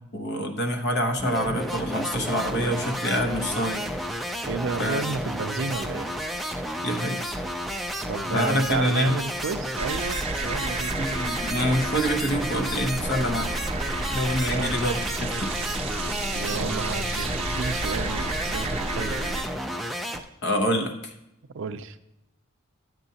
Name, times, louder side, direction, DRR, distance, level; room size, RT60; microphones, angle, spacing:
voice 1, 0.1-3.9 4.8-5.0 6.8-7.3 8.3-9.2 11.0-13.5 14.1-15.9 20.4-21.1, equal, 50° left, 5 dB, 0.9 m, -26 dB
sound 1, 1.2-20.2, equal, ahead, 0.3 m, -32 dB
sound 2, 1.6-10.0, right 1 dB, 70° left, 3.5 m, -49 dB
voice 2, 4.4-6.1 7.7-7.8 8.1-11.0 14.4-14.8 16.3-19.2 21.5-22.0, right 4 dB, 60° right, 10 dB, 0.4 m, -31 dB
sound 3, 9.8-19.4, right 3 dB, 25° right, 0.7 m, -31 dB
10.5 x 7.8 x 2.8 m, 0.88 s
head